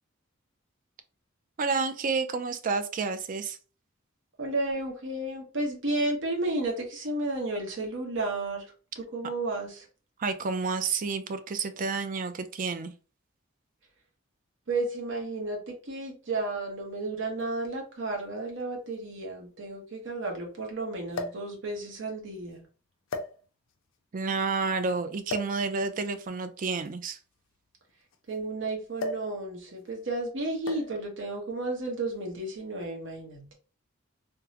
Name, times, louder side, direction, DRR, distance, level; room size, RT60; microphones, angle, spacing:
voice 1, 1.6-3.6 10.2-12.9 24.1-27.2, right 4 dB, 40° right, 0.4 m, -30 dB
voice 2, 4.4-8.7 8.9-9.9 14.7-22.7 28.3-33.5, right 2 dB, 65° right, 1.0 m, -32 dB
sound 1, 17.4-17.5 18.6-18.7 18.9-19.0 21.1-21.5 22.3-22.5 23.1-23.8 25.3-25.6 26.7-28.4 29.0-29.4 29.6-29.9 30.7-31.0 32.0-32.3, left 2 dB, 70° left, 0.5 m, -36 dB
3.5 x 2.0 x 2.8 m
head